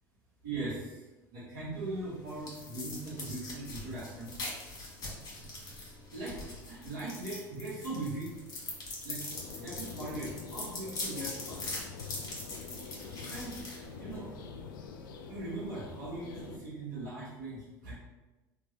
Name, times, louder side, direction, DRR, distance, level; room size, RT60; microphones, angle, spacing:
voice 1, 0.4-4.4 6.1-6.4 6.7-8.3 9.0-9.2 9.5-11.7 13.3-13.6 14.0-14.3 15.3-17.9, right 2 dB, 75° right, -10 dB, 1.1 m, -40 dB
sound 1, 1.7-14.4, left 2 dB, 35° left, 1.4 m, -42 dB
sound 2, 9.3-16.6, left 5 dB, 80° left, 0.4 m, -45 dB
2.9 x 2.5 x 2.8 m, 1.1 s
hypercardioid pair, 80°, 11 cm